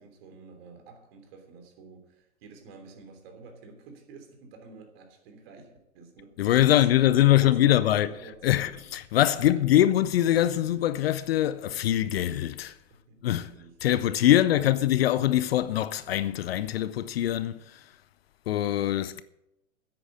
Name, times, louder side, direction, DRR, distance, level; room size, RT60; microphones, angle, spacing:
voice 1, 0.0-8.8 9.4-9.8 12.9-14.7 15.0-15.1, right 4 dB, 45° right, 3.3 m, -49 dB
voice 2, 6.4-12.7 13.2-13.5 13.8-17.8 18.5-19.2, left 13 dB, 45° left, 0.6 m, -23 dB
10.0 x 8.8 x 7.5 m
hypercardioid pair, 115°, 41 cm